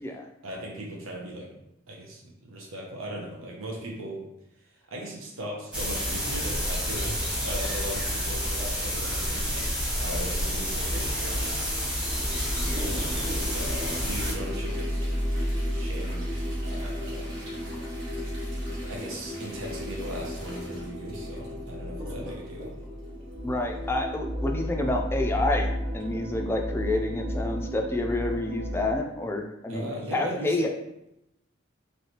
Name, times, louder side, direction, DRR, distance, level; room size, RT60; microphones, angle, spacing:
voice 1, 0.4-1.5 1.9-4.2 4.9-9.7 10.0-11.6 12.8-15.0 15.7-17.3 18.9-22.7 29.7-30.7, right 1 dB, 85° right, -1 dB, 0.8 m, -38 dB
sound 1, 5.7-14.3, equal, 5° right, 0.9 m, -29 dB
sound 2, 10.8-29.0, equal, 45° right, 0.7 m, -33 dB
Toilet flush, 12.5-24.1 26.0-26.1 26.4-26.5 27.3-27.4 28.1-28.3 28.8-28.9, equal, 70° right, 1.2 m, -44 dB
voice 2, 23.4-29.9 30.1-30.7, left 2 dB, 10° left, 2 dB, 0.3 m, -28 dB
3.2 x 3.1 x 2.8 m, 0.84 s
head